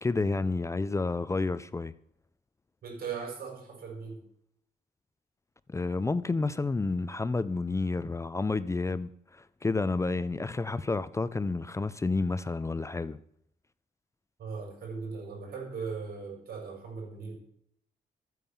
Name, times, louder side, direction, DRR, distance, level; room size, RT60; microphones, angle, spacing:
voice 1, 0.0-1.9 5.7-13.2, left 3 dB, 20° left, 0.5 m, -30 dB
voice 2, 2.8-4.2 14.4-17.4, right 5 dB, 75° right, 6.5 m, -38 dB
14.5 x 9.3 x 7.1 m
cardioid pair, 125°, 16 cm